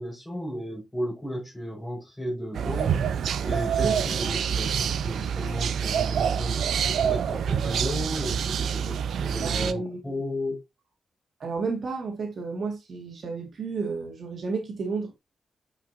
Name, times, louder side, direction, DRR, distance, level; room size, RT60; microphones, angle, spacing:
voice 1, 0.0-10.6, equal, 10° left, 4.9 m, -34 dB
sound 1, 2.5-9.7, right 8 dB, 85° right, 0.5 m, -26 dB
voice 2, 9.4-10.0 11.4-15.2, right 4 dB, 50° right, 1.8 m, -31 dB
8.5 x 5.0 x 2.7 m
wide cardioid pair, 160°, 0 cm